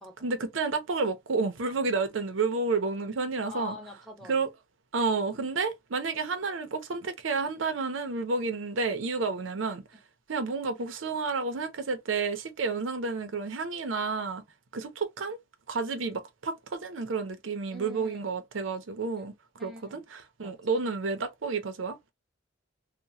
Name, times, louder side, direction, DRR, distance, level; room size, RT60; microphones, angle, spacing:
voice 1, 0.2-3.8 4.3-4.5 4.9-9.8 10.3-14.4 14.7-15.4 15.7-19.3 19.6-20.0 20.4-22.0, right 4 dB, 85° right, 0.6 m, -30 dB
voice 2, 3.4-4.4 17.7-18.2 19.6-20.0 20.4-20.5, left 3 dB, ahead, 1.1 m, -44 dB
2.8 x 2.1 x 2.7 m
head